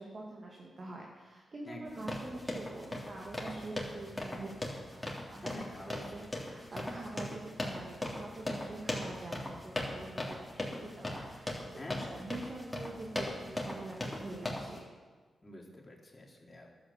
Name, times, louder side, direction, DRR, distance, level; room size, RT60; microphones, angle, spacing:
voice 1, 0.0-11.6 12.0-14.8, right 2 dB, 55° right, -2 dB, 2.3 m, -45 dB
voice 2, 1.6-2.1 5.4-6.1 11.8-12.1 15.4-16.7, left 1 dB, 30° left, -2 dB, 3.6 m, -47 dB
sound 1, 1.9-14.8, left 1 dB, 15° left, 3.3 m, -39 dB
11.5 x 8.6 x 7.3 m, 1.4 s
supercardioid pair, 45°, 0 cm